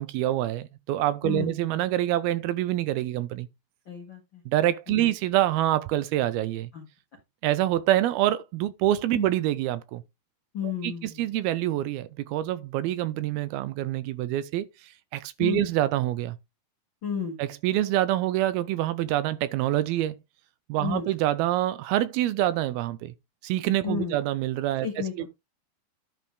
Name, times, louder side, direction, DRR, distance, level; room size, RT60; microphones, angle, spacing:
voice 1, 0.0-3.5 4.5-6.7 7.4-10.0 10.8-14.7 15.1-16.4 17.4-20.2 20.7-23.1 23.4-24.9 25.2-25.3, right 13 dB, 85° right, 2.5 m, -26 dB
voice 2, 3.9-4.4 4.9-5.1 6.7-6.9 9.1-9.3 10.5-11.3 15.4-15.6 17.0-17.4 20.8-21.1 23.8-24.2 24.8-25.3, left 7 dB, 60° left, 1.3 m, -32 dB
11.0 x 4.5 x 4.5 m
omnidirectional pair, 4.5 m